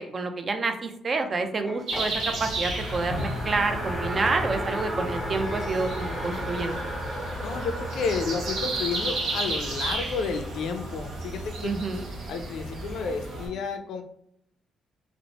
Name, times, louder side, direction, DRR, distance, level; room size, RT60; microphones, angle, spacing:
voice 1, 0.0-6.8 11.6-12.1, right 3 dB, 40° right, 6 dB, 0.4 m, -28 dB
sound 1, 1.7-2.1 3.8-6.8, left 2 dB, 20° left, 0.5 m, -41 dB
sound 2, 1.9-13.5, right 2 dB, 80° right, 0.9 m, -35 dB
Race car auto racing, 2.1-13.5, equal, 15° right, 1.1 m, -34 dB
voice 2, 7.4-11.7 12.3-14.0, left 5 dB, 75° left, 6 dB, 0.4 m, -31 dB
2.9 x 2.0 x 2.8 m, 0.72 s
cardioid pair, 90°, 0 cm